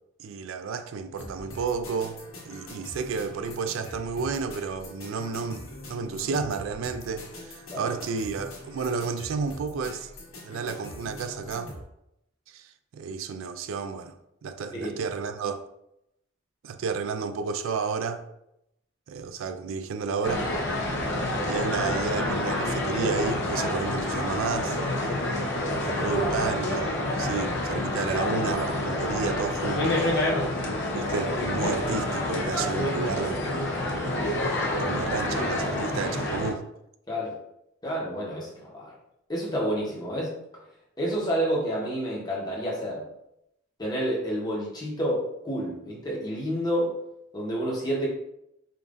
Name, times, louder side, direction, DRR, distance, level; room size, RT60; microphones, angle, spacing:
voice 1, 0.2-2.2 2.5-10.1 10.4-11.7 12.5-15.7 16.6-18.2 19.1-20.5 21.5-24.8 25.7-26.9 27.2-30.1 30.9-33.4 34.8-36.6, right 5 dB, 75° right, 0.3 m, -31 dB
sound 1, 1.2-11.8, left 1 dB, 90° left, 1.4 m, -43 dB
sound 2, 20.2-36.5, left 1 dB, 60° left, 0.7 m, -28 dB
voice 2, 25.6-26.1 34.4-34.5 37.1-37.3 37.8-38.9 39.3-40.3 41.0-43.0 43.8-47.0 47.3-48.1, equal, 20° left, 1.0 m, -29 dB
5.1 x 2.5 x 2.5 m
head